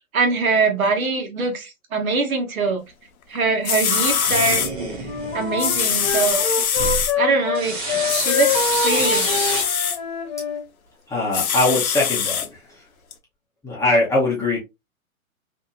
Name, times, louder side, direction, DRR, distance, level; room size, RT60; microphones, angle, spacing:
voice 1, 0.1-2.8 3.3-4.7 5.3-6.5 7.2-9.3, right 4 dB, 70° right, 1.1 m, -23 dB
sound 1, 3.3-3.4 3.6-4.7 5.6-7.1 8.1-10.0 11.3-12.5 13.1-13.2, left 8 dB, 80° left, 0.7 m, -23 dB
sound 2, 3.9-7.1 7.5-9.6, right 2 dB, 15° right, 0.4 m, -29 dB
Wind instrument woodwind instrument, 5.0-7.6 7.9-10.6, left 4 dB, 35° left, 1.1 m, -25 dB
voice 2, 11.1-12.4 13.6-14.6, left 2 dB, 5° left, 0.8 m, -21 dB
2.7 x 2.6 x 2.3 m
hypercardioid pair, 130°, 42 cm